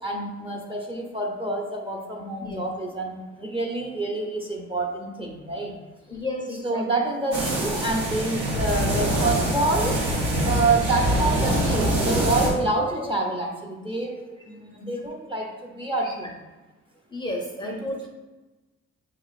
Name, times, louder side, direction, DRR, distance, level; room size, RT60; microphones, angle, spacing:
voice 1, 0.0-5.8 6.6-10.0 10.4-16.3 17.6-17.8, right 2 dB, 20° right, 0 dB, 0.7 m, -27 dB
voice 2, 6.1-6.8 16.0-16.1 17.1-18.1, left 1 dB, 15° left, -1 dB, 0.6 m, -32 dB
sound 1, 7.3-12.5, right 1 dB, 75° right, 1.4 m, -24 dB
6.0 x 3.0 x 2.4 m, 1.1 s
cardioid pair, 90°, 30 cm